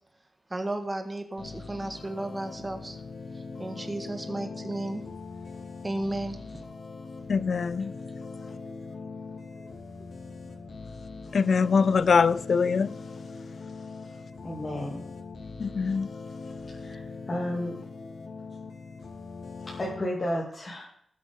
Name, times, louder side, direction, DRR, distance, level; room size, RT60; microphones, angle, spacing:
voice 1, 0.5-3.0 3.6-5.0 5.8-6.4 9.6-9.7, right 1 dB, 15° right, 1.6 m, -33 dB
sound 1, 1.4-20.0, left 4 dB, 70° left, 2.1 m, -41 dB
voice 2, 7.3-7.9 11.3-12.9 15.6-16.1, left 5 dB, 55° left, 0.4 m, -23 dB
voice 3, 14.4-15.0 16.8-17.7 19.6-20.8, left 1 dB, 30° left, 2.7 m, -32 dB
19.5 x 8.5 x 3.7 m
wide cardioid pair, 155°, 0 cm